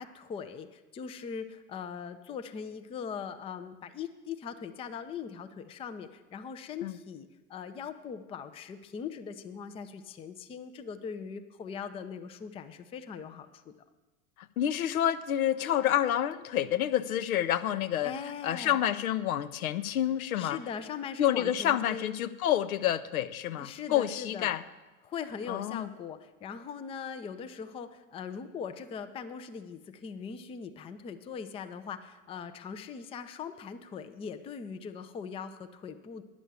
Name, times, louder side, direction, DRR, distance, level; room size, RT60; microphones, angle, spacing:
voice 1, 0.0-13.7 18.0-18.8 20.3-22.1 23.6-24.6 25.0-36.2, left 6 dB, 15° left, 8 dB, 0.4 m, -40 dB
voice 2, 14.6-18.1 18.4-20.6 21.2-24.6 25.5-25.9, left 11 dB, 75° left, 13 dB, 0.7 m, -28 dB
9.8 x 6.2 x 8.0 m, 1.2 s
hypercardioid pair, 95°, 43 cm